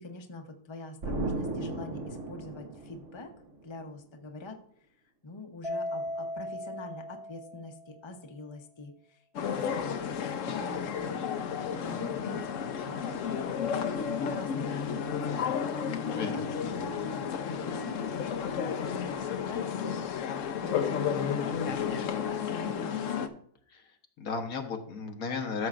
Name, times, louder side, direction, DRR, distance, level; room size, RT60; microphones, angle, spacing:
voice 1, 0.0-3.3 3.6-4.6 5.2-11.2 11.5-13.9 14.2-15.6 16.1-21.7 21.9-23.3, left 2 dB, 25° left, 4 dB, 0.9 m, -44 dB
Explosion, 1.0-3.7, right 2 dB, 60° right, 1.4 m, -35 dB
Mallet percussion, 5.6-8.1, left 1 dB, 25° right, 1.2 m, -37 dB
sound 1, 9.4-23.3, left 7 dB, 65° left, 1.0 m, -32 dB
voice 2, 16.1-16.8 23.7-23.8 24.2-25.7, left 4 dB, 85° left, 4 dB, 1.7 m, -35 dB
13.0 x 7.1 x 2.5 m, 0.63 s
omnidirectional pair, 1.5 m